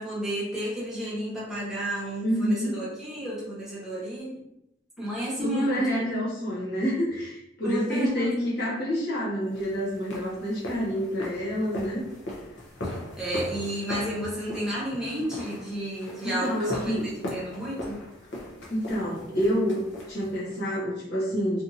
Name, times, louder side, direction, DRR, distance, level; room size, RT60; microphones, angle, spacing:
voice 1, 0.0-4.4 5.0-5.9 7.6-8.3 12.8-18.0, right 1 dB, 5° right, -8 dB, 0.9 m, -32 dB
voice 2, 2.2-2.7 5.4-12.0 16.2-17.1 18.7-19.8 20.1-21.6, equal, 55° left, -7 dB, 1.3 m, -28 dB
sound 1, 9.5-20.6, left 1 dB, 85° left, 0.8 m, -39 dB
2.8 x 2.6 x 2.5 m, 0.82 s
head